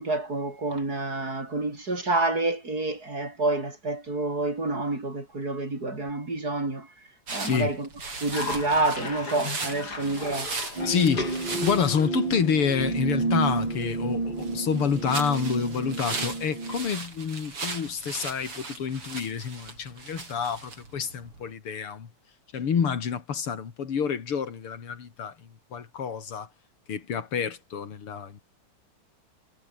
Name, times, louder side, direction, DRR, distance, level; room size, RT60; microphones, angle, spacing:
voice 1, 0.0-6.9 7.3-7.9 8.2-10.5, right 2 dB, 40° right, 5.8 m, -28 dB
sound 1, 7.3-21.5, right 3 dB, 85° right, 6.8 m, -38 dB
Cough, 8.3-13.4, left 3 dB, 45° left, 4.5 m, -37 dB
sound 2, 10.8-16.8, right 3 dB, 60° right, 6.9 m, -30 dB
voice 2, 10.9-22.1 22.5-25.3 25.7-26.5 26.9-28.4, left 7 dB, 80° left, 3.2 m, -28 dB
omnidirectional pair, 2.4 m